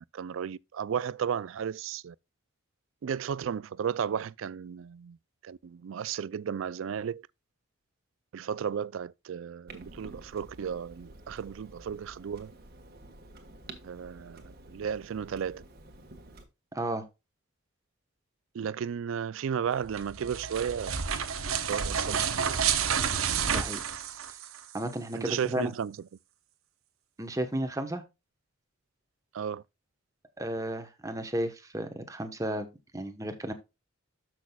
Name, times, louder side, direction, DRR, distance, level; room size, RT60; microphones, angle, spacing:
voice 1, 0.0-2.2 3.0-5.2 5.4-7.3 8.3-12.5 13.8-15.6 18.5-21.0 21.4-22.6 25.1-26.0 29.3-29.6, right 7 dB, 65° right, 0.3 m, -34 dB
Clock, 9.7-16.4, right 2 dB, 45° right, 1.5 m, -50 dB
voice 2, 16.7-17.0 23.5-23.8 24.7-25.7 27.2-28.0 30.4-32.7 32.9-33.5, right 1 dB, 15° right, 1.0 m, -33 dB
sound 1, 19.8-24.8, right 7 dB, 90° right, 1.0 m, -30 dB
12.5 x 6.1 x 2.3 m
head